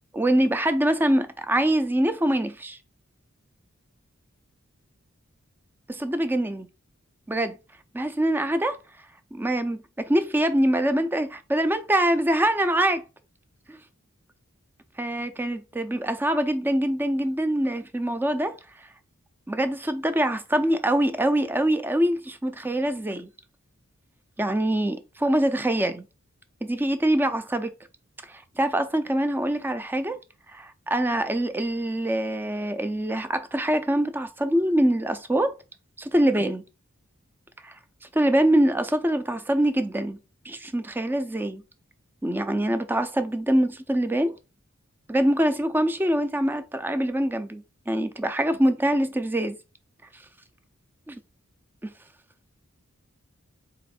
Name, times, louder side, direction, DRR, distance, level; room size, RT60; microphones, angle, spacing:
voice 1, 0.1-2.8 5.9-6.7 7.3-7.6 7.9-8.8 9.3-13.0 13.7-13.8 15.0-18.6 19.5-23.3 24.4-26.1 26.6-27.7 28.3-30.2 30.5-35.5 36.0-36.6 37.6-37.7 38.1-40.2 40.5-41.6 42.2-44.4 45.1-49.6 51.1-51.2 51.8-51.9, right 1 dB, 10° right, 0.4 m, -24 dB
4.0 x 3.0 x 4.1 m
head